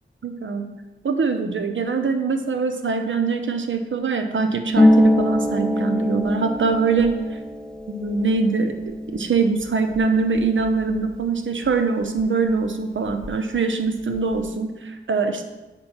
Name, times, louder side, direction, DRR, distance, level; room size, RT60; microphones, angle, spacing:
voice 1, 0.2-0.7 1.0-7.1 7.9-15.5, right 4 dB, 65° right, 7 dB, 0.7 m, -23 dB
Harp, 4.7-12.2 12.5-13.6 13.9-14.5, left 1 dB, 5° left, 0.5 m, -23 dB
4.4 x 4.3 x 5.6 m, 1.1 s
cardioid pair, 50°, 21 cm